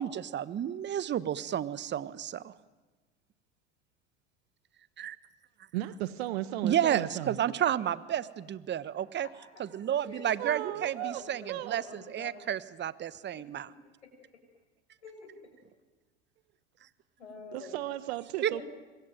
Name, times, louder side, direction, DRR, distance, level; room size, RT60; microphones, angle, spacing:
voice 1, 0.0-2.5 5.0-5.2 6.6-9.3 9.6-13.7 18.4-18.6, right 10 dB, 30° right, 17 dB, 1.3 m, -31 dB
voice 2, 5.7-7.4 10.4-11.2 11.5-11.8 17.5-18.6, right 14 dB, 65° right, 14 dB, 1.3 m, -35 dB
voice 3, 9.0-9.3 10.0-12.4 13.3-13.8 14.0-14.4 15.0-15.6 17.2-17.8 18.5-18.6, left 4 dB, 85° left, 2 dB, 7.0 m, -49 dB
26.0 x 22.0 x 9.3 m, 1.2 s
hypercardioid pair, 80°, 33 cm